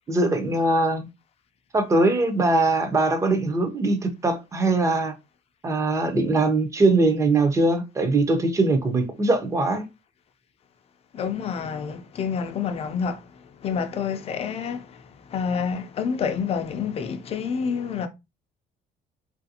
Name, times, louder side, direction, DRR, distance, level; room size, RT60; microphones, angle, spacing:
voice 1, 0.1-1.1 1.7-5.1 5.6-9.9, right 2 dB, 15° right, 0.5 m, -21 dB
voice 2, 11.1-13.3 13.6-15.0 15.3-18.1, left 6 dB, 35° left, 0.4 m, -28 dB
3.2 x 2.5 x 2.7 m
cardioid pair, 165°, 18 cm